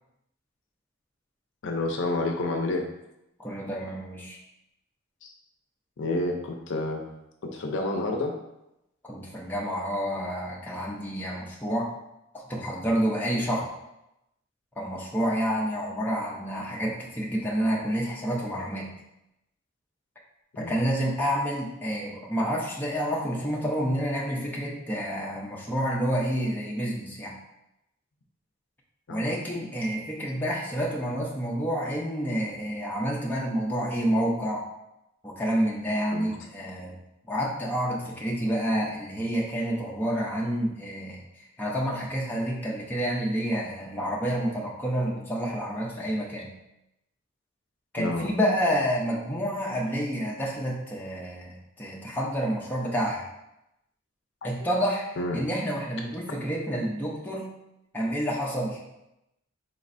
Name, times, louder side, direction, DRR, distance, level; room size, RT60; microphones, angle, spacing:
voice 1, 1.6-2.8 5.2-5.3 6.0-7.1 7.4-8.3 20.6-20.8 29.1-29.3 36.1-36.3 48.0-48.3 55.2-55.4, left 2 dB, 60° left, 2 dB, 0.5 m, -29 dB
voice 2, 3.4-4.4 9.0-11.9 12.3-13.7 14.8-18.9 20.6-27.3 29.1-34.6 35.2-37.0 37.3-41.2 41.6-46.5 47.9-53.2 54.4-55.0 55.3-57.5 57.9-58.8, equal, 10° left, -4 dB, 0.5 m, -29 dB
4.1 x 3.1 x 2.5 m, 0.87 s
head